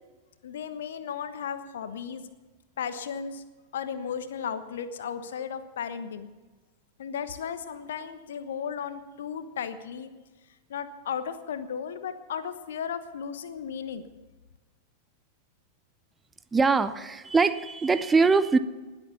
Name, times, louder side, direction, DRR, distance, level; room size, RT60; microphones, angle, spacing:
voice 1, 0.4-2.3 2.8-3.4 3.7-6.3 7.0-10.1 10.7-14.0, left 7 dB, 60° left, 12 dB, 1.1 m, -35 dB
voice 2, 16.5-18.6, right 4 dB, 15° right, 13 dB, 0.6 m, -22 dB
20.0 x 8.2 x 7.0 m, 1.2 s
figure-of-eight pair, 90°, 0 cm